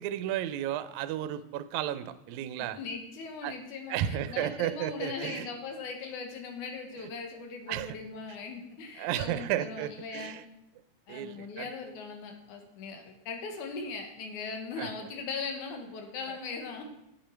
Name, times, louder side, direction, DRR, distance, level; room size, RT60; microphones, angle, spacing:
voice 1, 0.0-2.8 3.4-3.6 3.9-5.5 6.9-7.1 7.7-8.0 9.0-10.4 11.1-11.7 14.8-14.9 16.3-16.4, right 12 dB, 80° right, 13 dB, 1.8 m, -33 dB
voice 2, 2.6-10.4 11.1-16.8, left 4 dB, 75° left, 3 dB, 2.6 m, -39 dB
8.9 x 7.6 x 4.4 m, 0.84 s
omnidirectional pair, 3.5 m